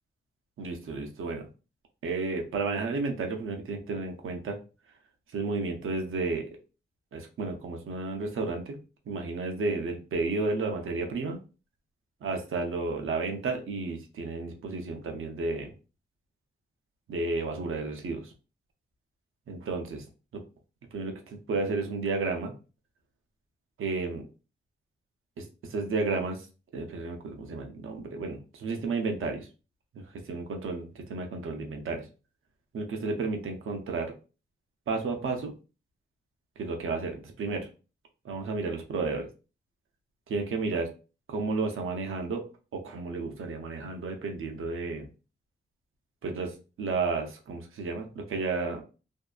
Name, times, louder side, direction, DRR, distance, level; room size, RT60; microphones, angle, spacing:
voice 1, 0.6-1.5 2.0-4.6 5.3-6.4 7.1-8.8 9.1-11.4 12.2-15.7 17.1-18.3 19.5-20.0 20.3-20.4 20.9-22.5 23.8-24.2 25.4-25.5 25.7-26.4 26.7-29.5 29.9-32.1 32.7-34.1 34.9-35.5 36.6-37.7 38.2-39.3 40.3-40.9 41.3-42.4 42.7-45.1 46.2-46.5 46.8-48.8, right 3 dB, 85° right, 3 dB, 0.6 m, -32 dB
2.7 x 2.2 x 2.4 m, 0.33 s
wide cardioid pair, 130°, 21 cm